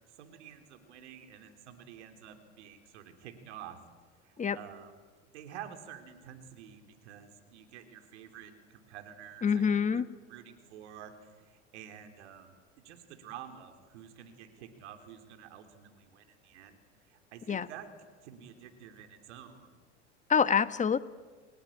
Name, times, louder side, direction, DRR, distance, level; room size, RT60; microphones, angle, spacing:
voice 1, 0.2-3.8 4.2-4.9 5.2-12.6 12.8-16.8 17.1-17.9 18.2-19.7, right 9 dB, 70° right, 5 dB, 3.7 m, -49 dB
voice 2, 9.4-10.1 17.5-17.7 20.3-21.0, left 6 dB, 20° left, 13 dB, 1.4 m, -26 dB
29.5 x 18.5 x 8.8 m, 1.4 s
hypercardioid pair, 80°, 36 cm